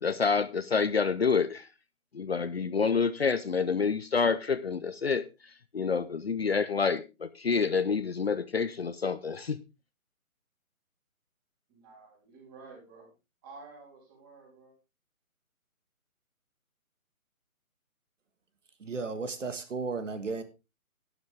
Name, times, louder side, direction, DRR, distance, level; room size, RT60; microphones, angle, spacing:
voice 1, 0.0-1.7 2.1-5.2 5.7-9.6, left 5 dB, 45° left, 0.7 m, -28 dB
voice 2, 11.7-13.1 13.4-14.7, right 4 dB, 15° right, 3.4 m, -51 dB
voice 3, 18.8-20.4, right 4 dB, 60° right, 1.9 m, -34 dB
12.0 x 10.5 x 3.5 m
hypercardioid pair, 165°, 42 cm